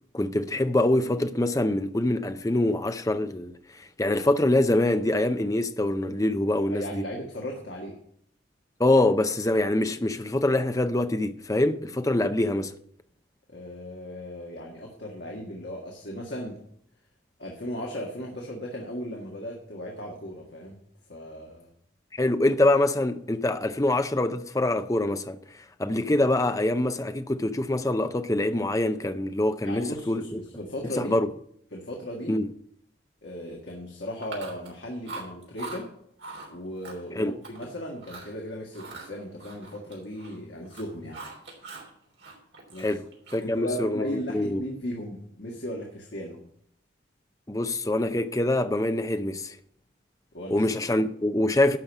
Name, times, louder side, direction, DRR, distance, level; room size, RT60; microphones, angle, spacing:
voice 1, 0.1-7.0 8.8-12.7 22.1-25.4 25.8-30.4 31.0-31.3 32.3-32.5 37.2-37.4 42.8-43.1 43.3-44.6 47.5-49.6 50.5-51.8, left 1 dB, 15° left, 0.5 m, -25 dB
voice 2, 6.7-8.0 13.5-16.6 17.4-20.8 21.1-21.7 29.6-31.2 31.7-32.4 33.2-35.9 36.5-41.2 42.7-43.0 43.4-46.4 50.3-50.7, equal, 60° left, 1.8 m, -36 dB
Chewing mastication, 34.2-34.8 35.0-35.8 36.2-36.5 36.8-37.7 38.0-38.3 38.7-40.4 40.6-41.9 42.2-43.6, right 3 dB, 65° right, 3.4 m, -42 dB
11.5 x 5.2 x 7.2 m
head